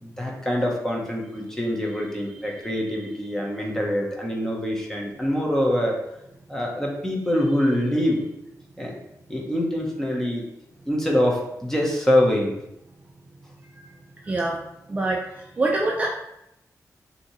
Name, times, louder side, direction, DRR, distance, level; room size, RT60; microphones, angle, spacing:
voice 1, 0.0-6.0 6.5-8.2 8.8-8.9 9.3-10.4 10.9-12.5, equal, 5° left, -2 dB, 0.9 m, -24 dB
voice 2, 14.2-14.6 14.9-16.1, right 2 dB, 25° right, -1 dB, 0.4 m, -25 dB
6.1 x 2.8 x 3.1 m, 0.84 s
wide cardioid pair, 145°, 6 cm